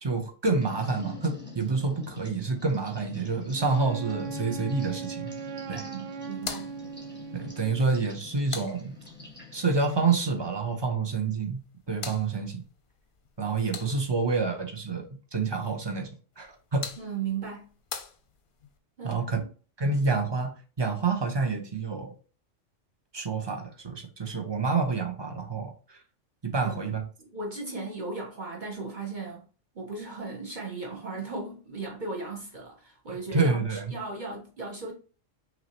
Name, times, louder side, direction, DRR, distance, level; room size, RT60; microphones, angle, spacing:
voice 1, 0.0-5.3 5.7-5.9 7.3-8.9 9.5-11.6 11.9-12.6 13.4-16.1 16.4-16.9 19.0-19.4 19.8-22.1 23.1-26.0 26.4-27.0 33.3-33.9, right 4 dB, 25° right, 0.6 m, -28 dB
sound 1, 0.6-10.4, left 5 dB, 10° left, 1.1 m, -45 dB
Wind instrument woodwind instrument, 3.6-7.9, right 6 dB, 75° right, 0.9 m, -38 dB
voice 2, 5.9-6.7 17.0-17.7 19.0-19.5 26.6-26.9 27.2-29.4 29.7-34.9, right 4 dB, 40° right, 1.1 m, -36 dB
sound 2, 6.3-9.4 11.4-14.3 16.3-18.8, left 6 dB, 50° left, 0.7 m, -43 dB
6.0 x 2.8 x 2.9 m
omnidirectional pair, 1.3 m